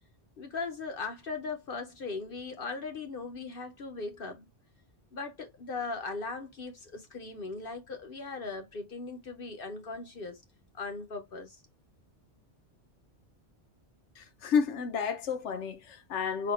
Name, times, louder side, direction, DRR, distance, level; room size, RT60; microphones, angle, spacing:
voice 1, 0.4-4.5 5.1-10.4 10.7-11.6, left 4 dB, 55° left, 0.9 m, -38 dB
voice 2, 14.2-16.5, left 6 dB, 80° left, 1.1 m, -31 dB
4.2 x 2.2 x 4.1 m
omnidirectional pair, 1.2 m